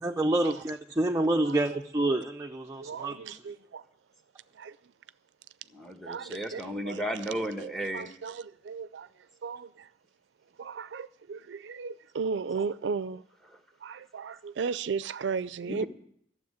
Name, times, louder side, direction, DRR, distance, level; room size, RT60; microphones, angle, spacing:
voice 1, 0.0-3.4, right 1 dB, 15° right, 0.5 m, -28 dB
voice 2, 1.4-1.8 2.8-3.8 4.5-4.8 6.1-7.0 7.6-9.1 9.4-9.9 10.6-13.2 13.8-15.8, right 5 dB, 85° right, 0.4 m, -35 dB
voice 3, 5.7-8.1 15.7-15.9, equal, ahead, 1.1 m, -34 dB
12.5 x 7.3 x 9.4 m
head